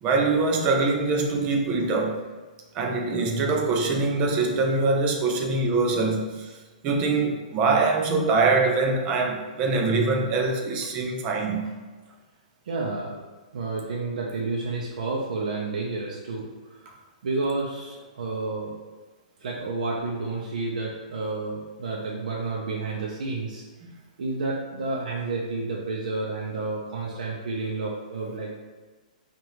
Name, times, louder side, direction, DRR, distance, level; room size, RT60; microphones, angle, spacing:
voice 1, 0.0-2.2 2.7-6.6 6.8-11.7 16.9-17.0 23.8-23.9, right 3 dB, 25° right, 1 dB, 0.6 m, -23 dB
voice 2, 12.6-13.2 13.5-18.7 19.4-23.6 24.2-28.5, right 3 dB, 75° right, -3 dB, 0.7 m, -30 dB
5.0 x 2.5 x 3.0 m, 1.3 s
hypercardioid pair, 160°, 4 cm